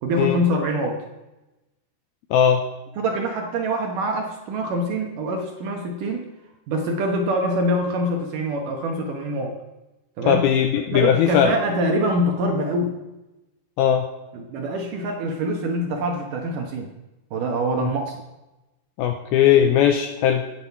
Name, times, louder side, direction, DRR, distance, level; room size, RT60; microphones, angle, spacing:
voice 1, 0.0-1.0 3.0-6.3 6.7-9.6 10.2-10.5 10.9-13.0 14.3-16.9 17.3-18.2, right 1 dB, 65° right, 2 dB, 2.3 m, -24 dB
voice 2, 2.3-2.6 10.3-11.5 13.8-14.1 17.8-17.9 19.0-20.4, left 9 dB, 85° left, 6 dB, 2.2 m, -18 dB
16.5 x 8.2 x 5.8 m, 1.0 s
omnidirectional pair, 5.0 m